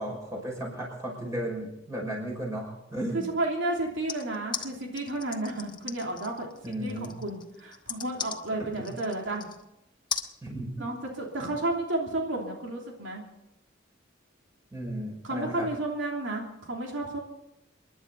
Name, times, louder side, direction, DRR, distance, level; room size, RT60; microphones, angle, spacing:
voice 1, 0.0-3.3 6.6-7.1 8.6-8.9 10.4-10.9 11.4-11.5 14.7-15.7, right 1 dB, 15° right, -1 dB, 5.9 m, -35 dB
voice 2, 3.1-9.5 10.8-13.2 15.2-17.2, right 2 dB, 85° right, 0 dB, 3.0 m, -32 dB
sound 1, 4.1-9.6 10.1-10.3, left 7 dB, 25° left, 1.0 m, -37 dB
28.5 x 11.0 x 4.1 m, 0.88 s
head